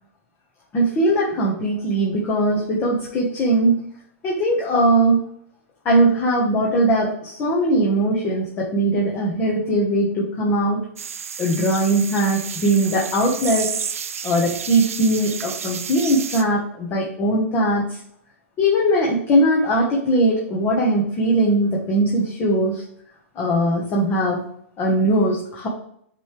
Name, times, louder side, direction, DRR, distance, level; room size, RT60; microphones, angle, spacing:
voice 1, 0.7-3.9 4.2-5.3 5.8-10.8 11.4-13.7 14.2-18.0 18.6-22.8 23.3-24.4 24.8-25.7, right 1 dB, 30° left, -3 dB, 1.3 m, -20 dB
sound 1, 11.0-16.4, right 7 dB, 85° right, 0.5 m, -31 dB
8.9 x 3.4 x 3.4 m, 0.68 s
hypercardioid pair, 120°, 7 cm